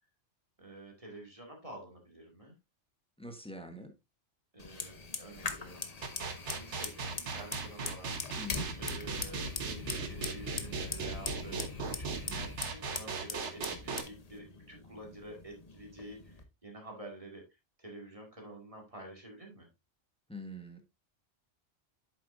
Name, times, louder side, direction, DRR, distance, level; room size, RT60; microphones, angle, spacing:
voice 1, 0.6-2.6 4.5-5.8 6.5-8.2 8.5-11.7 12.0-17.4 17.8-19.7, right 1 dB, 30° right, 1 dB, 2.3 m, -49 dB
voice 2, 3.2-3.9 8.4-8.7 20.3-20.8, left 1 dB, 5° left, 5 dB, 1.3 m, -44 dB
Fire, 4.6-16.4, left 4 dB, 35° left, 0.9 m, -42 dB
sound 1, 6.0-14.0, right 4 dB, 70° right, 1.4 m, -37 dB
8.7 x 7.0 x 2.6 m, 0.23 s
omnidirectional pair, 1.2 m